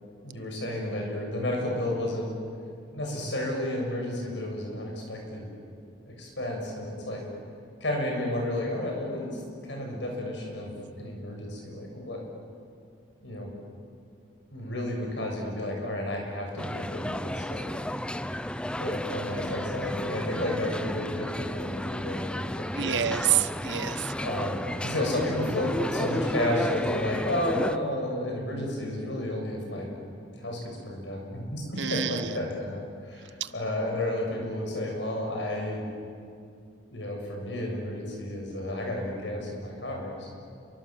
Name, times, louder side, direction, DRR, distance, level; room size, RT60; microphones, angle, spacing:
voice 1, 0.2-2.3 2.9-5.5 6.1-7.2 7.8-12.2 13.2-13.6 14.5-17.7 18.8-23.2 24.2-29.9 30.4-35.8 36.9-40.4, left 1 dB, 80° left, 0 dB, 7.3 m, -32 dB
sound 1, 16.6-27.8, left 1 dB, 5° left, 0.6 m, -33 dB
voice 2, 22.8-24.1 31.8-32.3 33.4-33.5, right 9 dB, 80° right, 11 dB, 1.2 m, -27 dB
28.5 x 24.0 x 7.6 m, 2.3 s
head